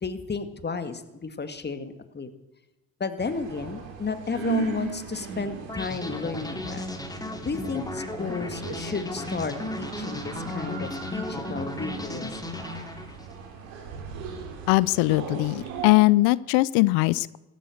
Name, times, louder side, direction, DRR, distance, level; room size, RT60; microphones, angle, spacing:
voice 1, 0.0-2.3 3.0-6.8 7.4-12.5, left 5 dB, 25° left, 10 dB, 1.9 m, -33 dB
sound 1, 3.2-15.9, right 8 dB, 90° right, 3.4 m, -38 dB
sound 2, 5.7-13.4, left 2 dB, 10° left, 2.5 m, -35 dB
voice 2, 14.7-17.4, left 21 dB, 80° left, 20 dB, 0.6 m, -21 dB
16.0 x 12.5 x 6.5 m, 1.0 s
supercardioid pair, 80°, 39 cm